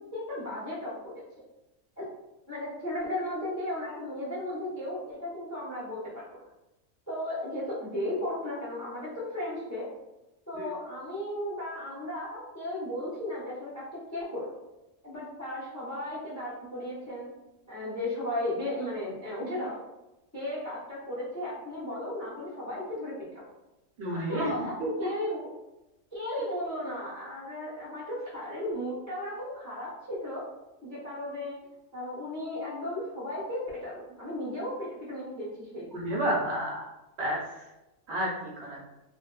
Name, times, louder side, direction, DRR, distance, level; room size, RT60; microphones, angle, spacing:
voice 1, 0.1-1.1 2.5-6.2 7.1-9.9 10.5-13.8 14.1-14.4 15.0-17.3 17.7-19.8 20.3-23.3 24.1-25.5 26.1-30.4 30.8-31.6 31.9-36.0, left 1 dB, 20° left, -8 dB, 0.4 m, -35 dB
voice 2, 24.0-24.5 24.8-24.9 35.9-36.8 37.2-37.4 38.1-38.8, right 1 dB, 65° right, -4 dB, 0.7 m, -30 dB
2.7 x 2.0 x 2.3 m, 0.99 s
omnidirectional pair, 1.4 m